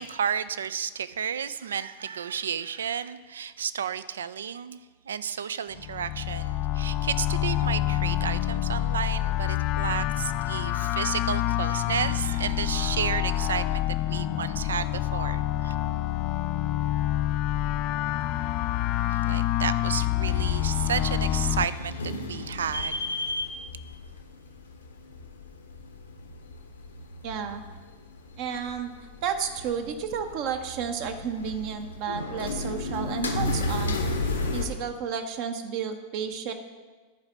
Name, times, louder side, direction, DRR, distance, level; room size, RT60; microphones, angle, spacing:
voice 1, 0.0-15.7 19.1-23.0, right 8 dB, 65° right, 15 dB, 0.3 m, -32 dB
sound 1, 5.8-21.6, left 13 dB, 40° left, 0.3 m, -27 dB
sound 2, 20.2-34.7, left 2 dB, 75° left, 1.0 m, -34 dB
voice 2, 27.2-27.6 28.4-28.9 29.2-34.0 34.5-36.5, right 7 dB, 45° right, 6 dB, 0.7 m, -32 dB
10.5 x 4.9 x 5.9 m, 1.3 s
figure-of-eight pair, 90°, 0 cm